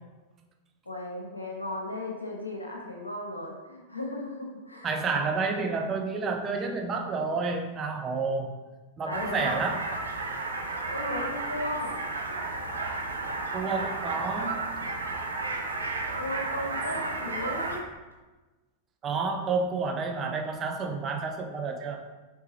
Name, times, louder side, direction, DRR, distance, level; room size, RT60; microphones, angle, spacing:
voice 1, 0.9-5.0 9.0-9.7 10.9-12.0 16.1-17.8, left 1 dB, 80° left, 0 dB, 0.8 m, -36 dB
voice 2, 4.8-8.5 9.0-9.8 13.5-14.6 19.0-22.0, right 4 dB, 25° right, 2 dB, 0.6 m, -30 dB
sound 1, 9.1-17.8, right 3 dB, 75° right, 0.6 m, -33 dB
4.5 x 3.3 x 3.3 m, 1.2 s
figure-of-eight pair, 90°, 0 cm